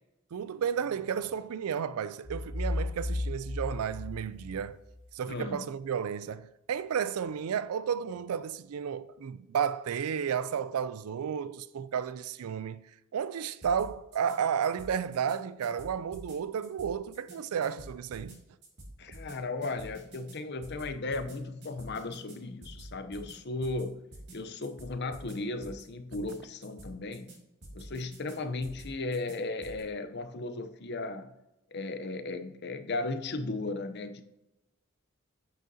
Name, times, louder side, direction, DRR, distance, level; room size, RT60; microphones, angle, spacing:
voice 1, 0.3-4.8 5.1-12.8 13.1-18.4, right 7 dB, 90° right, 0.4 m, -32 dB
sound 1, 2.2-5.1, left 1 dB, 35° left, 1.2 m, -34 dB
voice 2, 5.3-5.6 19.0-24.0 24.3-27.3 27.7-31.3 31.7-34.2, left 2 dB, 50° left, 0.7 m, -36 dB
sound 2, 13.6-14.4 14.6-15.4 15.6-16.4 16.6-17.4 17.6-18.4 18.6-19.4 19.6-20.4 20.6-21.4 21.6-22.4 22.6-23.4 23.6-23.8 24.1-24.4 24.6-25.4 25.6-25.8 26.1-26.4 26.6-27.4 27.6-28.4 28.6-29.4 29.6-29.8, right 1 dB, 50° right, 2.3 m, -47 dB
8.7 x 6.4 x 2.8 m
head